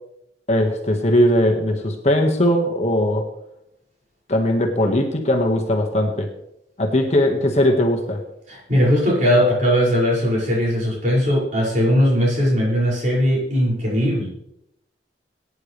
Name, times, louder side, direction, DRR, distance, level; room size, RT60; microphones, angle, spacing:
voice 1, 0.5-3.2 4.3-6.3 6.8-8.2, left 1 dB, 40° left, 2 dB, 1.7 m, -19 dB
voice 2, 8.5-14.3, equal, 45° right, -5 dB, 6.2 m, -19 dB
20.5 x 9.9 x 3.4 m, 0.80 s
head